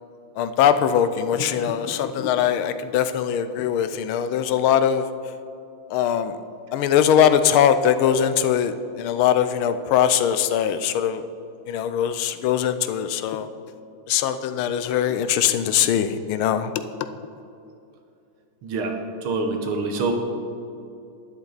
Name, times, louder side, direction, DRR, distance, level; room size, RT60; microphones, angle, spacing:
voice 1, 0.4-5.1 5.9-6.4 6.7-11.2 11.7-13.5 14.1-16.7, left 9 dB, 85° left, 11 dB, 1.5 m, -21 dB
voice 2, 18.6-20.1, right 3 dB, 85° right, 4 dB, 2.0 m, -26 dB
12.0 x 10.5 x 4.0 m, 2.6 s
omnidirectional pair, 2.3 m